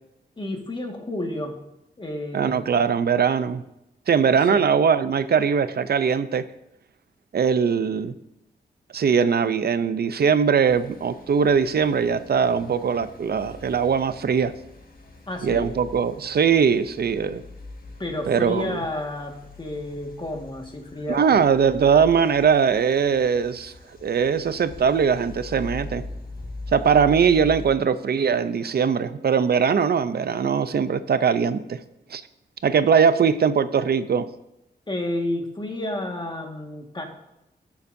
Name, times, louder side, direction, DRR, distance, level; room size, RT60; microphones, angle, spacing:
voice 1, 0.4-1.6 2.0-2.8 4.5-4.7 15.3-15.7 18.0-21.5 34.9-37.0, left 1 dB, 25° left, 2 dB, 1.7 m, -31 dB
voice 2, 2.3-3.6 4.1-6.5 7.3-8.1 8.9-14.5 15.4-17.4 18.3-18.8 21.1-23.7 24.0-26.0 26.7-31.8 32.1-32.2 32.6-34.3, right 6 dB, 65° right, 13 dB, 0.6 m, -21 dB
sound 1, 10.7-27.8, left 2 dB, 55° left, 1.7 m, -41 dB
20.0 x 7.1 x 2.7 m, 0.86 s
wide cardioid pair, 110°, 18 cm